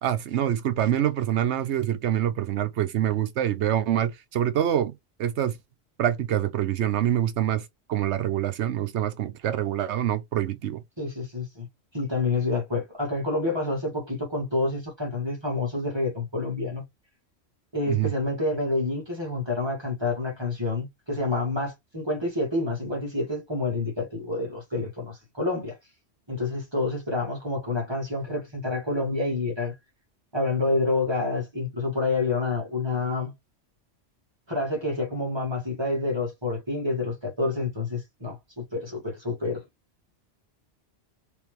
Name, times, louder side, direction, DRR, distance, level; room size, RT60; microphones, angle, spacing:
voice 1, 0.0-5.6 6.0-10.8 17.9-18.1, right 11 dB, 70° right, 1.0 m, -26 dB
voice 2, 11.0-11.7 11.9-16.8 17.7-25.8 26.3-29.7 30.3-33.3 34.5-39.6, left 2 dB, 20° right, 1.7 m, -28 dB
3.3 x 3.3 x 3.0 m
omnidirectional pair, 1.2 m